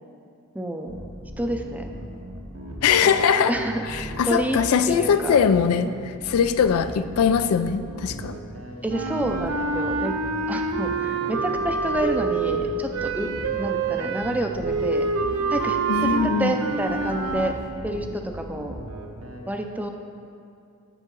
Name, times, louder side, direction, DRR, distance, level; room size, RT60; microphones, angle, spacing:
voice 1, 0.5-1.0 1.4-1.9 3.0-3.2 3.5-4.6 4.9-5.4 8.8-10.2 10.5-13.3 13.6-15.1 15.5-17.5 17.8-18.8 19.5-19.9, right 1 dB, 5° right, 4 dB, 0.5 m, -28 dB
sound 1, 0.9-19.4, right 1 dB, 70° right, 1.1 m, -38 dB
voice 2, 2.8-3.5 3.9-5.9 6.2-8.3 15.9-16.5, left 7 dB, 90° left, 11 dB, 0.4 m, -21 dB
sound 2, 8.9-17.6, right 4 dB, 90° right, 0.5 m, -27 dB
9.1 x 7.1 x 3.8 m, 2.5 s
head